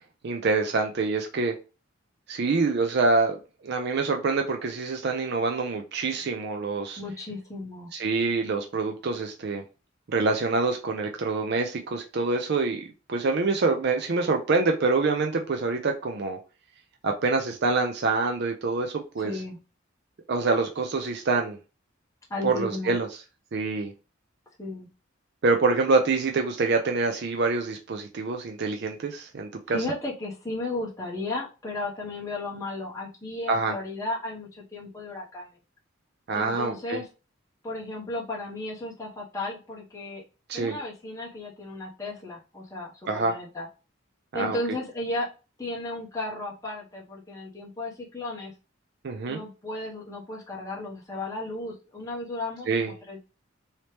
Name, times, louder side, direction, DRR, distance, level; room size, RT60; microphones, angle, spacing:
voice 1, 0.2-1.6 2.3-3.4 3.6-7.0 7.9-9.6 10.1-16.4 17.0-19.4 20.3-21.6 22.4-23.1 23.5-23.9 25.4-29.8 33.5-33.7 36.3-37.0 40.5-40.8 43.1-43.3 44.3-44.6 49.0-49.4 52.7-52.9, right 3 dB, 55° right, 3 dB, 0.4 m, -26 dB
voice 2, 7.0-7.9 19.2-19.6 22.3-22.9 24.6-24.9 29.7-35.5 36.3-37.1 37.6-40.2 40.5-43.7 44.3-45.3 45.6-48.5 49.3-53.2, left 2 dB, 15° left, -4 dB, 0.7 m, -34 dB
3.0 x 2.8 x 3.2 m, 0.32 s
head